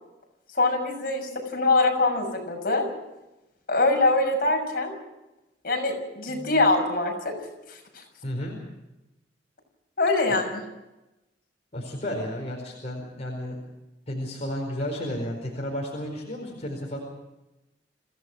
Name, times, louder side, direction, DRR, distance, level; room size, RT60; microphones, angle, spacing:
voice 1, 0.5-2.8 3.7-4.9 5.6-7.3 7.7-8.0 10.0-10.6, left 2 dB, 55° left, 2 dB, 6.4 m, -23 dB
voice 2, 8.2-8.6 11.7-13.6 14.1-17.0, equal, 40° left, -2 dB, 4.7 m, -32 dB
27.0 x 16.5 x 6.2 m, 0.97 s
head